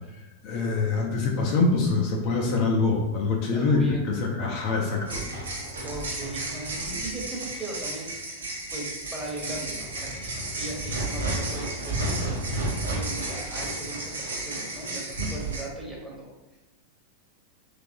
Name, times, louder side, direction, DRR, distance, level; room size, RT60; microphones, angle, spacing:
voice 1, 0.4-5.2, left 3 dB, 45° left, 0 dB, 0.5 m, -24 dB
voice 2, 3.5-4.1 5.8-8.2 8.7-16.6, right 2 dB, 5° right, -4 dB, 1.0 m, -38 dB
sound 1, 5.0-15.6, right 2 dB, 70° right, 0.8 m, -32 dB
3.3 x 3.3 x 2.6 m, 1.0 s
figure-of-eight pair, 90°, 0 cm